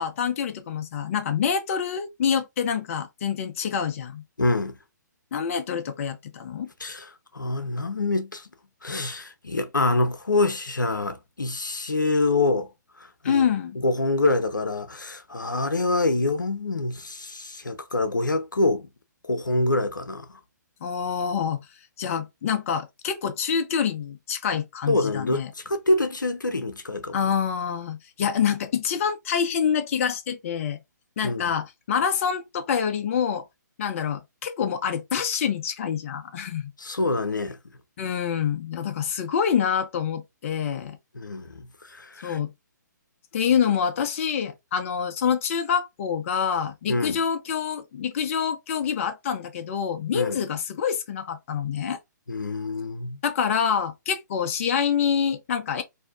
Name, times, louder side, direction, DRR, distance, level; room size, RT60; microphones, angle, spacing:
voice 1, 0.0-4.2 5.3-6.7 13.2-13.8 20.8-21.6 22.0-25.5 27.1-30.8 31.2-33.5 33.8-36.7 38.0-41.0 42.2-42.5 43.3-52.0 53.2-55.8, left 7 dB, 45° left, 0.7 m, -26 dB
voice 2, 4.4-4.8 6.8-8.5 8.8-12.7 13.0-13.4 13.8-18.9 19.2-20.4 24.9-27.2 31.2-31.5 36.8-37.6 41.1-42.4 46.9-47.2 50.1-50.4 52.3-53.2, left 2 dB, 90° left, 0.7 m, -26 dB
4.2 x 2.7 x 2.4 m
figure-of-eight pair, 135°, 10 cm